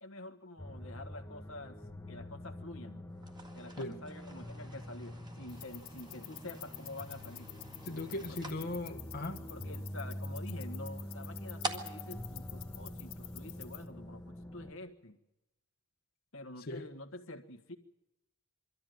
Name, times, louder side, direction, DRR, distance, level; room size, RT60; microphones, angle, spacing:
voice 1, 0.0-1.8 2.1-3.0 3.5-7.5 8.3-8.8 9.5-15.2 16.3-17.8, left 2 dB, 65° left, 9 dB, 1.6 m, -48 dB
sound 1, 0.6-14.7, left 1 dB, 10° left, 1.3 m, -45 dB
sound 2, 3.1-13.5, right 2 dB, 20° right, 1.8 m, -48 dB
sound 3, 5.5-13.9, left 17 dB, 85° left, 2.0 m, -50 dB
voice 2, 7.8-9.4 13.5-13.6 16.7-16.9, left 1 dB, 45° left, 1 dB, 1.3 m, -39 dB
23.5 x 13.5 x 9.4 m, 0.94 s
head